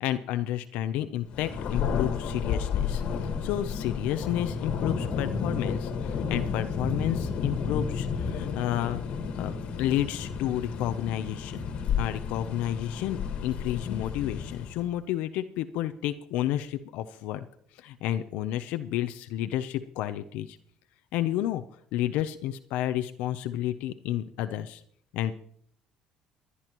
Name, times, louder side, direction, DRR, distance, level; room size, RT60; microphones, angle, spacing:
voice 1, 0.0-9.0 9.4-11.7 12.0-17.4 17.8-20.6 21.1-21.6 21.9-24.8 25.1-25.3, left 12 dB, 80° left, 9 dB, 0.6 m, -31 dB
Thunder, 1.3-14.9, left 6 dB, 65° left, 1.6 m, -31 dB
28.5 x 9.7 x 3.0 m, 0.63 s
cardioid pair, 95°, 2 cm